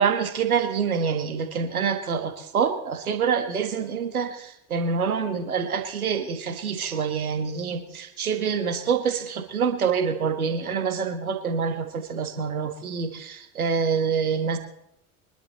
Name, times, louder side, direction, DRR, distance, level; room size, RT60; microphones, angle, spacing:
voice 1, 0.0-14.6, right 6 dB, 75° right, 7 dB, 1.7 m, -26 dB
23.5 x 11.5 x 4.0 m, 0.78 s
figure-of-eight pair, 70°, 43 cm